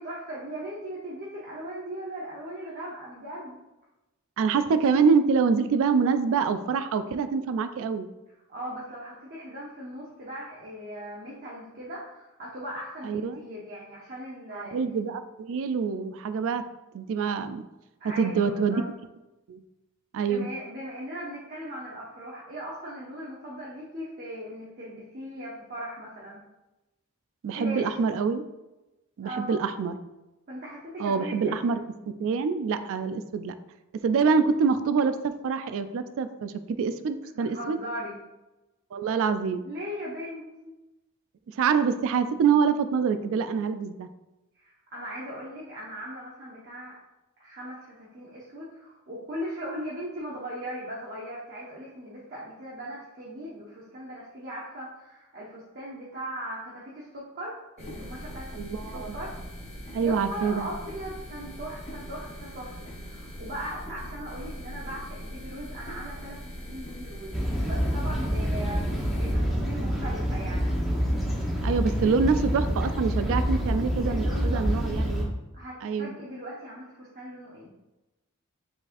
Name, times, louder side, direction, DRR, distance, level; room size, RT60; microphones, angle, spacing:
voice 1, 0.0-3.6 8.5-14.8 18.0-18.8 20.2-26.4 27.5-28.1 29.2-29.6 30.5-31.9 37.3-38.2 39.6-40.7 44.6-47.0 47.4-59.3 60.0-66.4 66.7-70.7 74.0-74.7 75.5-77.7, equal, 45° right, -5 dB, 0.8 m, -39 dB
voice 2, 4.4-8.1 13.0-13.4 14.5-16.6 16.9-17.6 18.2-18.8 19.5-19.6 20.1-20.5 27.4-28.4 29.2-29.9 31.0-31.8 32.2-33.5 34.0-37.8 38.9-39.6 41.5-44.1 58.5-59.2 59.9-60.7 71.6-75.3 75.8-76.2, right 5 dB, 65° right, 11 dB, 0.3 m, -25 dB
sound 1, 57.8-69.3, equal, 30° left, 0.8 m, -41 dB
sound 2, 67.3-75.2, equal, ahead, 0.9 m, -27 dB
4.7 x 4.1 x 2.5 m, 1.0 s
head